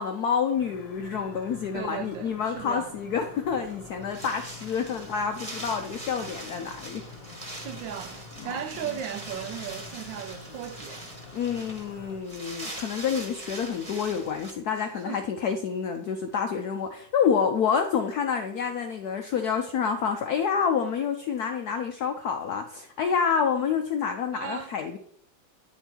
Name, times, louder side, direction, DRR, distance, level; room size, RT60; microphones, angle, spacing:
voice 1, 0.0-7.0 8.5-8.6 11.3-25.0, left 6 dB, 75° left, 0.8 m, -28 dB
sound 1, 0.6-12.2, left 4 dB, 55° left, 1.4 m, -47 dB
voice 2, 1.7-3.0 7.5-11.1 14.7-15.3 24.3-24.8, right 9 dB, 75° right, 1.1 m, -37 dB
Wind, 3.3-14.5, right 1 dB, 20° right, 1.1 m, -42 dB
9.2 x 4.4 x 4.4 m
omnidirectional pair, 2.3 m